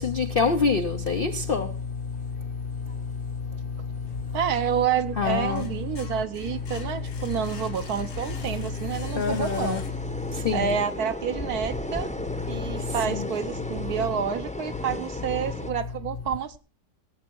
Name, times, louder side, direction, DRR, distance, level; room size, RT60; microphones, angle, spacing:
voice 1, 0.0-1.7 5.2-5.6 9.2-9.8 10.5-10.8, left 5 dB, 60° left, 0.6 m, -25 dB
sound 1, 1.0-15.7, left 1 dB, 5° left, 0.7 m, -38 dB
sound 2, 4.0-4.9 5.3-10.3, left 3 dB, 90° left, 2.0 m, -43 dB
voice 2, 4.3-9.8 10.5-12.1 12.5-16.6, right 8 dB, 65° right, 1.2 m, -29 dB
18.0 x 8.2 x 4.6 m
omnidirectional pair, 1.9 m